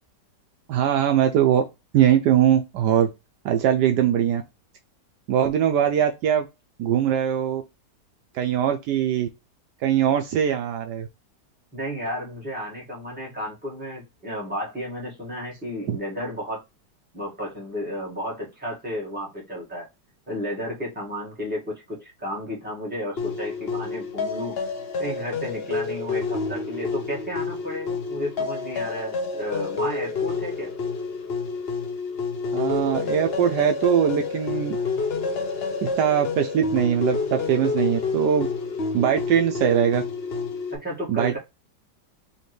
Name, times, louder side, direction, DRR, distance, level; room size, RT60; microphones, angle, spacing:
voice 1, 0.7-1.6 1.9-3.1 3.4-4.4 5.3-6.5 6.8-7.6 8.3-9.3 9.8-11.1 15.9-16.0 32.5-34.8 35.8-38.5 38.9-40.0 41.1-41.4, right 9 dB, 75° right, 1.1 m, -21 dB
voice 2, 11.7-16.6 17.1-19.9 20.3-24.6 25.0-30.7 40.7-41.4, equal, 5° right, 1.6 m, -32 dB
sound 1, 23.2-40.8, left 4 dB, 50° left, 0.7 m, -29 dB
4.2 x 2.9 x 3.1 m
omnidirectional pair, 1.9 m